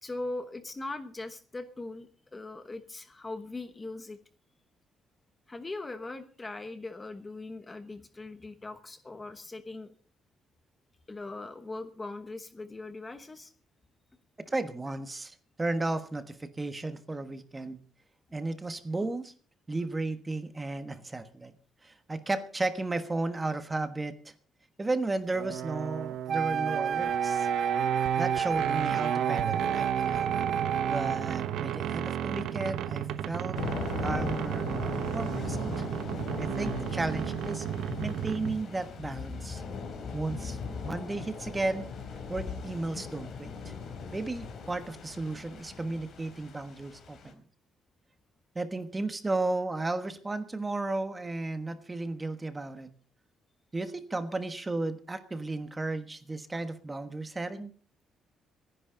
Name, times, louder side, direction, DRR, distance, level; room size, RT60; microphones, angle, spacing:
voice 1, 0.0-4.2 5.5-9.9 11.1-13.5, left 2 dB, 20° left, 10 dB, 1.0 m, -40 dB
voice 2, 14.5-17.8 18.3-19.3 19.7-21.5 21.8-24.3 24.8-27.5 28.2-30.4 30.9-33.6 34.0-34.7 35.1-35.9 36.4-37.6 38.0-39.6 40.1-40.6 40.8-41.9 42.3-43.7 44.1-47.4 48.5-52.9 53.7-57.7, right 2 dB, 15° right, 10 dB, 1.3 m, -34 dB
sound 1, 25.3-38.7, right 10 dB, 75° right, 1.1 m, -33 dB
Wind instrument woodwind instrument, 26.3-31.3, right 7 dB, 50° right, 0.7 m, -30 dB
Thunder / Rain, 33.5-47.3, left 5 dB, 50° left, 3.3 m, -39 dB
26.5 x 10.5 x 3.9 m, 0.40 s
cardioid pair, 135°, 0 cm